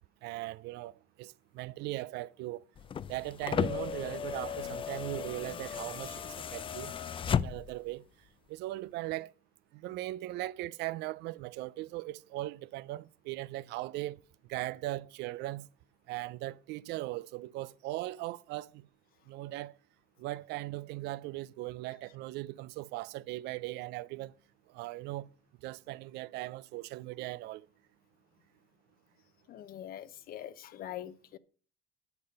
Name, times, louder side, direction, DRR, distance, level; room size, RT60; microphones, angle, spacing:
voice 1, 0.2-0.9 1.2-2.6 3.1-6.9 7.4-8.0 8.5-9.3 9.7-14.2 14.5-15.7 16.1-18.8 19.3-19.8 20.2-24.3 24.7-25.3 25.6-27.7, right 17 dB, 85° right, 0.4 m, -39 dB
sound 1, 2.8-7.9 9.1-9.2, left 8 dB, 30° left, 0.4 m, -35 dB
voice 2, 29.5-31.4, left 12 dB, 60° left, 0.7 m, -43 dB
9.7 x 6.8 x 5.3 m
cardioid pair, 110°, 17 cm